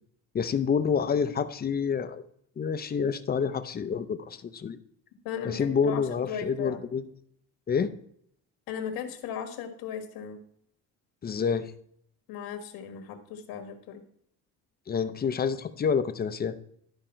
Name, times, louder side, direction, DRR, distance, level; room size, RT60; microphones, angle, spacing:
voice 1, 0.3-2.3 2.6-4.8 5.4-7.0 7.7-7.9 11.2-11.7 14.9-16.5, left 6 dB, 25° left, 11 dB, 0.6 m, -28 dB
voice 2, 5.2-6.8 8.7-10.4 12.3-14.0, left 8 dB, 85° left, 5 dB, 1.6 m, -37 dB
12.5 x 5.0 x 4.4 m, 0.68 s
cardioid pair, 130°, 36 cm